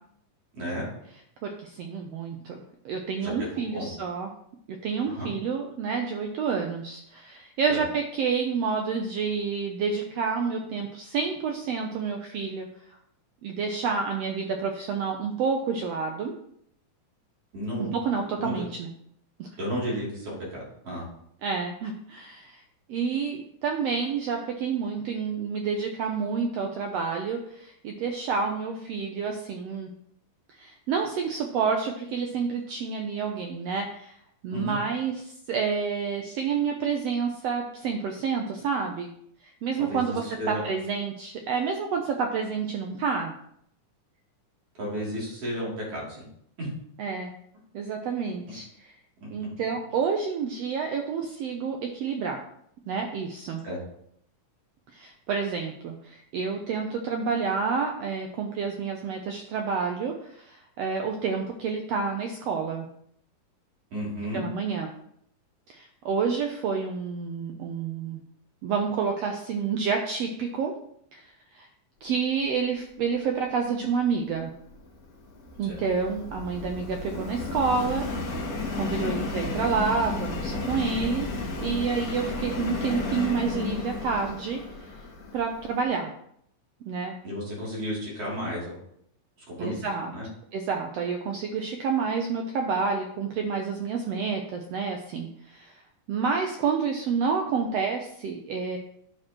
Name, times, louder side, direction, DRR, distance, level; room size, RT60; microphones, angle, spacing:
voice 1, 0.5-0.8 3.2-3.3 3.7-3.9 5.1-5.3 7.7-7.8 17.5-18.5 19.6-21.1 34.5-34.8 39.8-40.0 40.4-40.6 44.8-46.2 46.6-46.7 49.2-49.3 53.6-53.8 63.9-64.5 75.6-75.8 87.2-88.8 89.5-89.9 90.1-90.3, equal, 50° right, -5 dB, 3.9 m, -33 dB
voice 2, 1.4-2.6 2.8-4.3 4.8-12.7 13.4-16.3 17.8-18.9 19.4-19.5 21.4-22.6 22.9-29.9 30.6-34.2 34.4-39.1 39.4-43.3 47.0-47.3 47.7-48.9 49.3-52.4 52.9-53.6 54.9-62.9 64.3-64.9 65.7-68.2 68.6-70.7 71.1-71.2 71.5-71.7 72.0-74.5 75.6-78.4 78.7-81.3 81.6-84.9 85.3-86.1 86.9-87.1 89.6-90.1 90.5-95.8 96.1-98.8, right 5 dB, 85° right, 3 dB, 1.4 m, -29 dB
Subway metro underground, 74.5-85.8, left 3 dB, 65° left, 0.8 m, -33 dB
10.5 x 6.6 x 3.0 m, 0.70 s
omnidirectional pair, 3.8 m